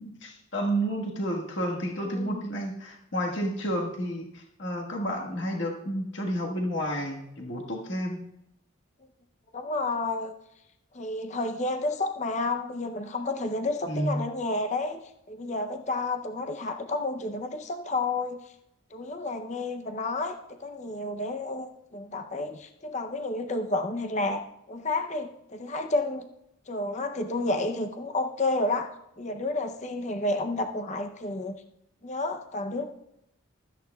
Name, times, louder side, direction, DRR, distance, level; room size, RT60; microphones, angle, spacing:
voice 1, 0.0-8.2 13.9-14.2, equal, 55° left, 0 dB, 1.5 m, -31 dB
voice 2, 2.0-2.4 9.5-10.3 10.9-18.4 18.9-24.4 24.7-26.3 26.7-28.9 29.2-31.6 32.0-32.8, left 2 dB, 35° left, 6 dB, 0.6 m, -30 dB
15.5 x 13.0 x 2.3 m, 0.81 s
head